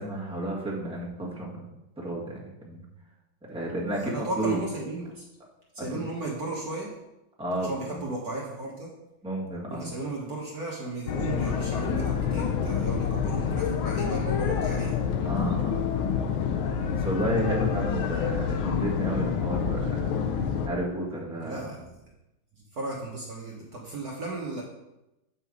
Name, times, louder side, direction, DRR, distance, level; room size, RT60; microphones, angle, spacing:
voice 1, 0.0-1.7 2.0-2.8 3.4-4.6 5.8-6.1 7.4-8.0 9.2-9.9 15.2-16.1 16.9-21.7, right 1 dB, 5° right, -4 dB, 1.6 m, -32 dB
voice 2, 3.9-5.2 5.7-7.0 7.6-8.9 9.7-15.0 21.4-21.9 22.7-24.6, right 2 dB, 55° right, -2 dB, 1.5 m, -35 dB
sound 1, 11.1-20.7, left 7 dB, 85° left, 1.6 m, -27 dB
8.2 x 5.6 x 4.6 m, 0.93 s
omnidirectional pair, 2.2 m